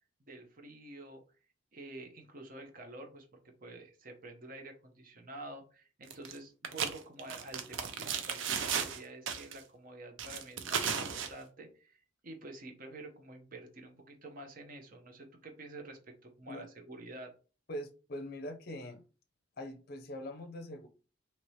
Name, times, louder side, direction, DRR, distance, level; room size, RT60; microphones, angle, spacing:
voice 1, 0.2-1.2 1.7-3.3 3.6-17.3, right 2 dB, 45° right, 4 dB, 0.7 m, -49 dB
sound 1, 6.1-6.4 6.6-9.0 9.3-9.6 10.2-11.3, right 7 dB, 90° right, 0.5 m, -35 dB
voice 2, 17.7-19.0 19.6-20.9, left 1 dB, 55° left, 7 dB, 0.5 m, -42 dB
2.9 x 2.8 x 3.1 m, 0.36 s
head